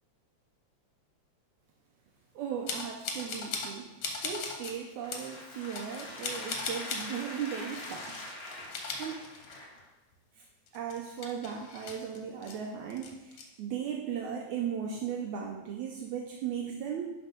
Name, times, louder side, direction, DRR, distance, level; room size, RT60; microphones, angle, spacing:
voice 1, 2.4-3.9 4.2-8.3 8.6-9.2 10.4-10.5 10.7-17.1, right 8 dB, 75° right, 0 dB, 2.2 m, -37 dB
sound 1, 2.7-3.7 4.0-4.7 5.1-5.3 5.7-7.1 7.7-8.3 8.6-9.8 10.1-10.2 10.7-12.6 12.9-13.4, left 4 dB, 60° left, 1.5 m, -38 dB
sound 2, 4.8-9.9, left 2 dB, 75° left, 0.8 m, -44 dB
10.5 x 4.3 x 5.2 m, 1.0 s
omnidirectional pair, 3.5 m